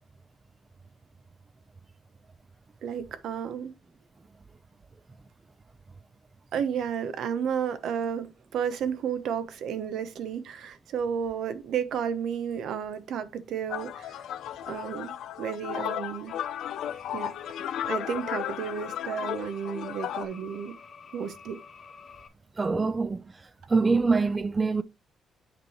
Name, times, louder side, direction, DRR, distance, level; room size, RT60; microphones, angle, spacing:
voice 1, 2.8-3.7 6.5-14.2 14.7-16.3 17.1-20.7 21.1-21.6, right 7 dB, 75° right, 0.9 m, -32 dB
sound 1, 13.7-20.3, left 11 dB, 80° left, 0.5 m, -34 dB
sound 2, 16.3-22.3, left 6 dB, 50° left, 1.1 m, -49 dB
voice 2, 22.6-24.8, right 4 dB, 25° right, 0.4 m, -25 dB
8.1 x 3.2 x 4.4 m
cardioid pair, 90°, 0 cm